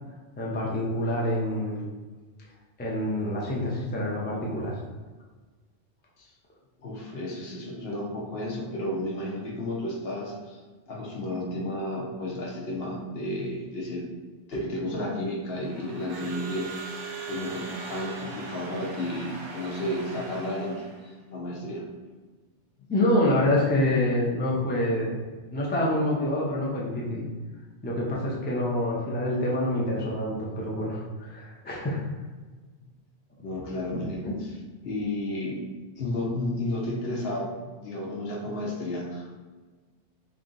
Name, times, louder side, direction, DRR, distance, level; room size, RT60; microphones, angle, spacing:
voice 1, 0.4-1.8 2.8-4.8 22.9-25.2 25.5-27.3 27.8-32.0 33.9-34.3, left 1 dB, 15° left, -4 dB, 0.4 m, -27 dB
voice 2, 6.8-10.6 10.9-14.1 14.5-17.0 17.3-21.9 33.4-34.2 34.8-35.6 36.0-39.4, left 1 dB, 60° left, -2 dB, 1.0 m, -32 dB
Crowd / Alarm, 15.5-21.1, right 4 dB, 85° right, 1.0 m, -40 dB
3.4 x 2.7 x 3.8 m, 1.3 s
omnidirectional pair, 1.2 m